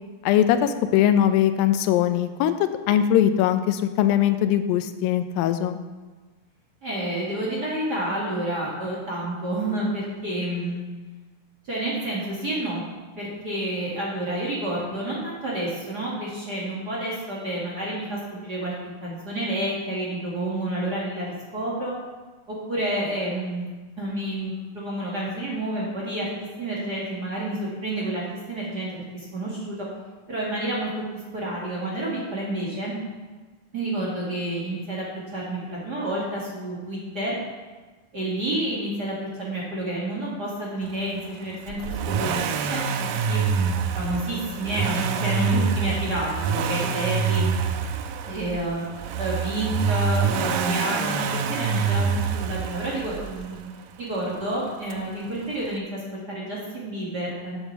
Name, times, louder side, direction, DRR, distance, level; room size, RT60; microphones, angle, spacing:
voice 1, 0.3-2.5 2.9-5.8, left 10 dB, 85° left, 10 dB, 2.4 m, -21 dB
voice 2, 6.8-10.8 11.6-12.8 13.2-21.9 22.5-23.7 24.0-29.9 30.3-33.0 33.7-35.1 35.3-37.3 38.1-41.8 42.1-47.5 48.3-48.8 49.2-53.6 54.0-57.6, right 1 dB, 35° right, -5 dB, 2.0 m, -29 dB
Accelerating revving vroom, 41.7-53.6 54.9-55.0, right 6 dB, 85° right, 2.4 m, -26 dB
7.9 x 7.3 x 7.1 m, 1.3 s
omnidirectional pair, 4.0 m